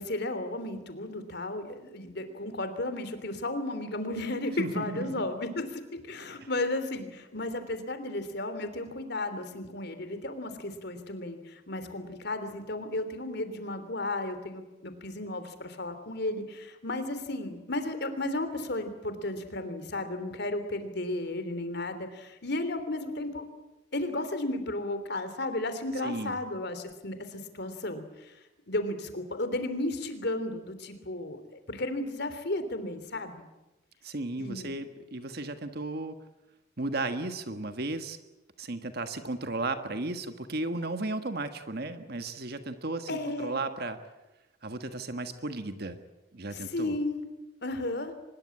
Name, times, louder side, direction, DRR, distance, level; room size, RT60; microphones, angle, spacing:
voice 1, 0.0-23.5 23.9-28.3 28.7-33.3 34.4-34.7 43.1-43.6 46.5-47.2 47.6-48.1, left 2 dB, 55° left, 9 dB, 3.4 m, -34 dB
voice 2, 4.6-5.3 26.0-26.4 34.0-36.2 36.8-38.2 38.6-44.0 44.6-46.0 46.3-47.0, right 2 dB, 50° right, 8 dB, 1.5 m, -34 dB
24.5 x 21.0 x 8.7 m, 0.99 s
head